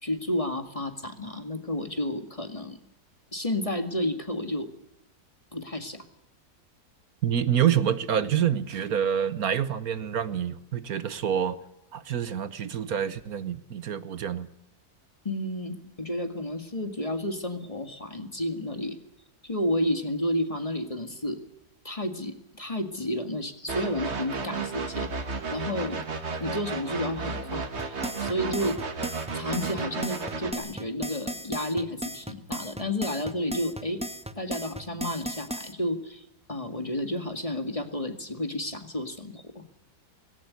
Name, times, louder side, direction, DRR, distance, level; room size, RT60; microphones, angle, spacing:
voice 1, 0.0-2.8 3.3-4.7 5.5-6.0 15.2-19.0 19.4-21.4 21.8-25.1 25.5-26.0 26.4-28.8 29.3-34.0 34.4-36.2 36.5-39.6, left 1 dB, 20° left, 8 dB, 2.0 m, -31 dB
voice 2, 7.2-11.6 11.9-14.5, right 9 dB, 70° right, 14 dB, 1.5 m, -27 dB
sound 1, 23.7-30.5, right 4 dB, 45° right, 2.0 m, -33 dB
sound 2, 27.8-35.7, right 1 dB, 5° right, 1.0 m, -35 dB
19.0 x 18.0 x 9.6 m, 0.84 s
omnidirectional pair, 1.7 m